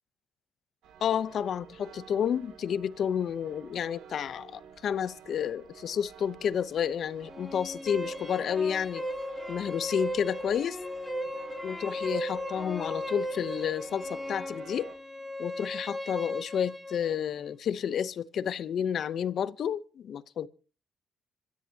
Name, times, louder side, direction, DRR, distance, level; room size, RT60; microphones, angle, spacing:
sound 1, 0.8-15.0, right 8 dB, 90° right, 2.8 m, -52 dB
voice 1, 1.0-9.0 9.5-10.8 11.6-14.9 15.4-20.5, left 8 dB, 65° left, 0.8 m, -30 dB
sound 2, 7.2-17.2, equal, 5° left, 3.9 m, -36 dB
26.0 x 13.5 x 2.9 m
cardioid pair, 90°, 0 cm